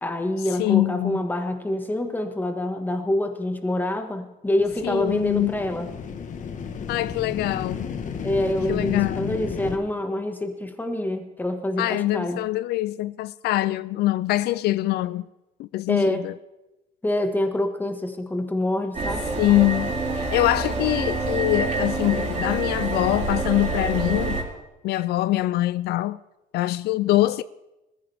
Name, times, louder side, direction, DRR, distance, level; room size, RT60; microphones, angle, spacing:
voice 1, 0.0-5.9 8.2-12.4 15.9-16.3 17.0-19.3, left 1 dB, 10° left, 1.6 m, -26 dB
voice 2, 0.6-1.2 4.8-5.5 6.9-7.9 8.7-9.4 11.8-15.2 15.6-16.3 19.4-24.4 24.8-26.2 26.5-27.4, left 16 dB, 75° left, 0.4 m, -24 dB
sound 1, 4.6-9.8, left 6 dB, 50° left, 1.3 m, -33 dB
sound 2, 18.9-24.4, right 3 dB, 45° right, 4.2 m, -27 dB
20.5 x 14.5 x 3.5 m
cardioid pair, 110°, 17 cm